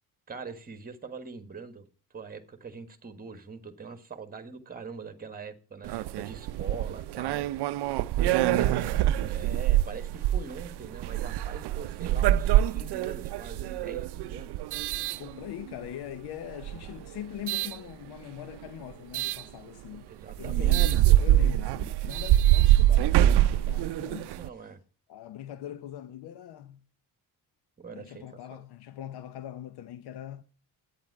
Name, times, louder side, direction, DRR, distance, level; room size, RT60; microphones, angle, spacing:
voice 1, 0.3-1.9 2.1-7.5 8.2-14.5 20.0-20.8 24.3-24.8 27.8-28.2 28.5-28.6, right 5 dB, 20° right, 1.4 m, -43 dB
sound 1, 5.8-15.9 16.5-17.8 19.1-19.4 19.9-20.0 20.3-24.5, right 13 dB, 75° right, 0.5 m, -25 dB
Motorcycle / Engine, 6.5-14.0, equal, 55° left, 6.8 m, -63 dB
voice 2, 8.2-9.3 15.2-20.1 20.4-24.6 25.1-26.8 27.9-30.4, left 11 dB, 70° left, 0.8 m, -42 dB
11.0 x 9.1 x 4.6 m
cardioid pair, 150°, 40 cm